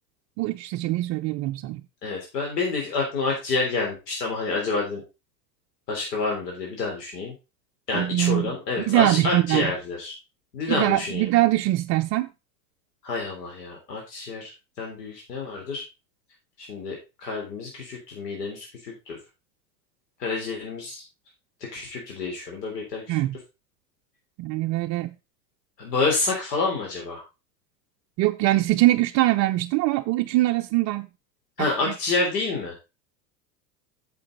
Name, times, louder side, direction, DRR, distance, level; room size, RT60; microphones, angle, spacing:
voice 1, 0.4-1.8 7.9-8.6 8.9-9.7 10.7-12.3 23.1-23.4 24.4-25.1 28.2-31.1 31.6-31.9, right 17 dB, 35° right, 0.5 m, -23 dB
voice 2, 2.0-5.0 5.9-7.3 7.9-10.1 10.5-11.2 13.0-14.5 14.8-15.8 16.6-19.2 20.2-21.0 21.7-23.0 25.8-27.2 31.6-32.8, left 3 dB, 75° left, 3.6 m, -28 dB
8.7 x 6.9 x 3.9 m
hypercardioid pair, 95°, 49 cm